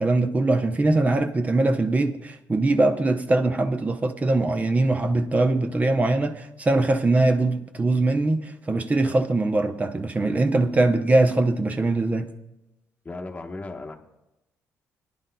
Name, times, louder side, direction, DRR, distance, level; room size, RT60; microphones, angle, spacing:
voice 1, 0.0-12.3, right 2 dB, 25° right, 0.7 m, -22 dB
voice 2, 13.0-14.0, left 2 dB, 25° left, 1.1 m, -35 dB
21.0 x 10.0 x 2.2 m
cardioid pair, 90°, 6 cm